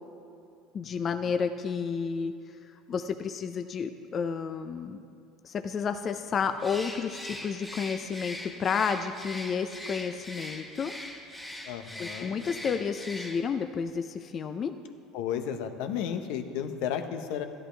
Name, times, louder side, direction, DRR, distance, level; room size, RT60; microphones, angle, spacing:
voice 1, 0.7-2.3 2.9-5.0 5.4-10.9 12.0-14.7, left 6 dB, 40° left, 8 dB, 0.5 m, -31 dB
Bird, 6.6-13.7, left 1 dB, 5° left, 1.3 m, -41 dB
voice 2, 11.7-12.3 15.1-17.5, left 8 dB, 75° left, 7 dB, 0.8 m, -33 dB
13.5 x 10.5 x 3.3 m, 2.6 s
supercardioid pair, 95°, 0 cm